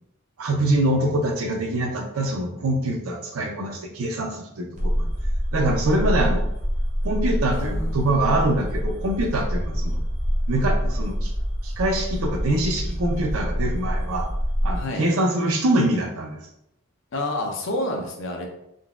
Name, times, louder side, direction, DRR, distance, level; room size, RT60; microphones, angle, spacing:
voice 1, 0.4-5.1 5.5-6.5 7.0-10.0 10.5-11.3 11.6-14.3 14.6-16.4, right 1 dB, 75° right, 2 dB, 0.6 m, -24 dB
sound 1, 4.8-14.8, equal, 35° right, 0.6 m, -26 dB
voice 2, 7.5-8.0 14.7-15.0 17.1-18.5, left 1 dB, 60° left, 2 dB, 0.5 m, -29 dB
3.7 x 2.2 x 2.4 m, 0.82 s
head